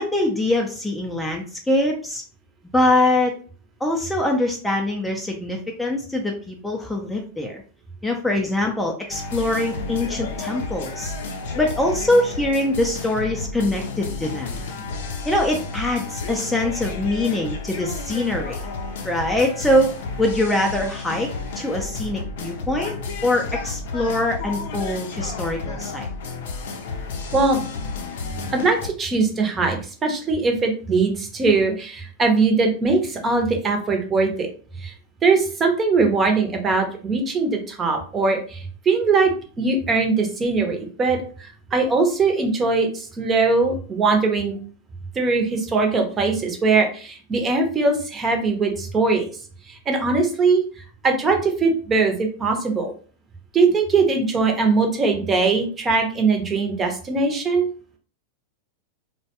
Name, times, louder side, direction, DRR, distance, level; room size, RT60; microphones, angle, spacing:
voice 1, 0.0-2.2 2.7-3.3 3.8-7.6 8.0-11.1 11.6-14.6 15.3-18.6 19.0-19.9 20.2-21.3 21.6-22.9 23.2-26.1, left 1 dB, 5° left, 1 dB, 0.4 m, -23 dB
sound 1, 9.1-28.9, left 4 dB, 75° left, 0.5 m, -32 dB
voice 2, 28.5-34.5 34.8-34.9 35.2-39.3 39.6-44.6 45.1-49.3 49.7-50.6 51.0-52.9 53.5-57.7, right 4 dB, 25° right, 3 dB, 0.7 m, -21 dB
2.2 x 2.1 x 2.8 m, 0.40 s
hypercardioid pair, 115°, 0 cm